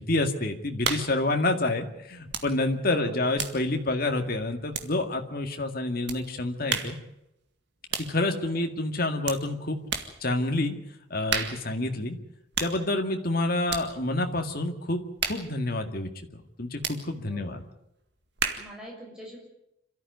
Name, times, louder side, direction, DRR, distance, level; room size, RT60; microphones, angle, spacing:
voice 1, 0.0-7.0 8.0-9.8 10.2-10.8 11.1-12.2 12.6-17.6, left 2 dB, 45° left, 5 dB, 2.0 m, -28 dB
sound 1, 0.8-1.2 2.3-2.6 2.8-5.2 6.1-6.3 6.7-7.1 7.9-8.2 9.2-9.5 9.9-10.2 11.3-11.7 12.5-12.8 13.7-13.9 15.2-15.5 16.8-17.0 18.4-18.8, right 6 dB, 55° right, 2.0 m, -32 dB
voice 2, 2.9-3.2 8.4-8.8 17.3-17.7 18.6-19.4, equal, 5° right, -3 dB, 6.4 m, -45 dB
26.5 x 13.5 x 9.5 m, 0.83 s
head